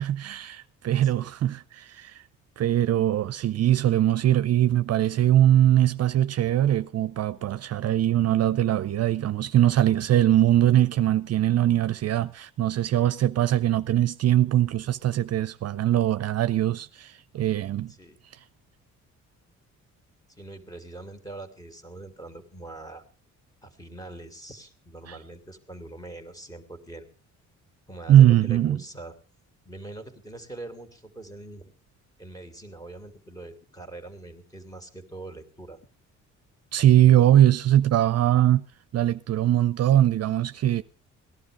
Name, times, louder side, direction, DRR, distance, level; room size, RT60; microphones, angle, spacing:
voice 1, 0.0-2.2 2.6-17.9 25.1-25.2 28.1-28.8 36.7-38.6 38.9-40.8, right 12 dB, 55° right, 0.6 m, -21 dB
voice 2, 20.4-23.0 23.6-27.1 27.9-29.1 29.6-31.7 32.2-35.8, right 2 dB, 10° left, 2.8 m, -43 dB
18.0 x 11.5 x 5.1 m
cardioid pair, 90°, 30 cm